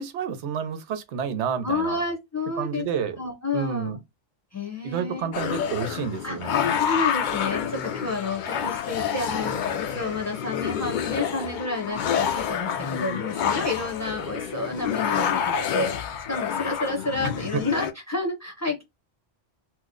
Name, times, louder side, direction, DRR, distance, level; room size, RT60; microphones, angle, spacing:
voice 1, 0.0-2.0 2.6-3.2 3.5-4.0 4.8-6.6, right 7 dB, 85° right, 0.9 m, -30 dB
voice 2, 1.6-2.8 3.2-4.0 4.5-5.3 6.2-15.4 15.7-18.8, left 3 dB, 20° left, 0.6 m, -30 dB
sound 1, 5.3-17.9, left 8 dB, 60° left, 0.5 m, -28 dB
2.9 x 2.1 x 3.6 m
omnidirectional pair, 1.1 m